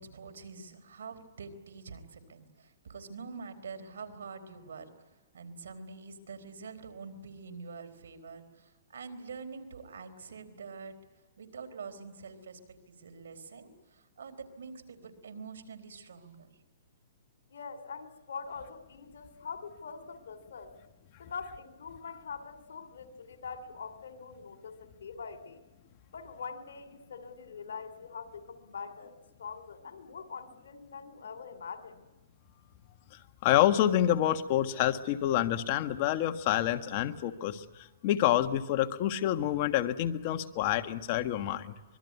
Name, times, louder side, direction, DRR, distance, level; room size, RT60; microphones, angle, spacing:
voice 1, 0.0-4.9 5.3-10.9 11.4-16.5, right 5 dB, 90° right, 8 dB, 4.1 m, -46 dB
voice 2, 17.5-20.8 21.2-25.6 26.1-32.0, left 5 dB, 90° left, 9 dB, 2.9 m, -43 dB
voice 3, 33.4-37.6 38.0-41.7, left 12 dB, 40° left, 8 dB, 1.5 m, -27 dB
25.5 x 22.0 x 9.6 m, 1.2 s
hypercardioid pair, 150°, 0 cm